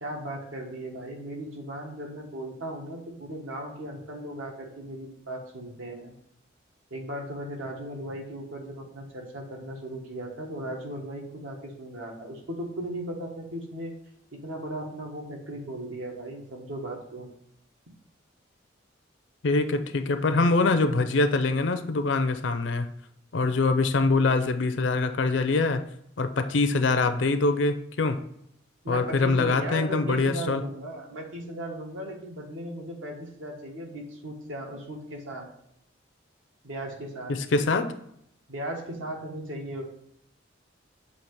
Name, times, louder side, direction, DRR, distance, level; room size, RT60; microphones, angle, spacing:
voice 1, 0.0-6.1 6.9-13.9 14.3-17.3 28.8-35.5 36.6-37.4 38.5-39.8, right 1 dB, 80° right, 1 dB, 1.3 m, -37 dB
voice 2, 19.4-22.9 23.3-25.8 26.2-28.2 28.9-30.6 37.3-37.9, left 3 dB, 65° left, 9 dB, 0.5 m, -24 dB
7.1 x 2.9 x 4.6 m, 0.74 s
head